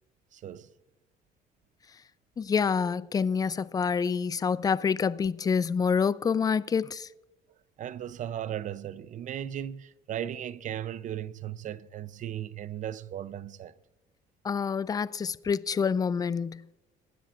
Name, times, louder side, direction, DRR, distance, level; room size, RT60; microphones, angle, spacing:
voice 1, 0.3-0.7 7.8-13.7, right 10 dB, 50° right, 0.5 m, -36 dB
voice 2, 2.4-7.1 14.4-16.6, left 6 dB, 20° left, 0.3 m, -27 dB
22.0 x 10.0 x 2.5 m
cardioid pair, 110°, 17 cm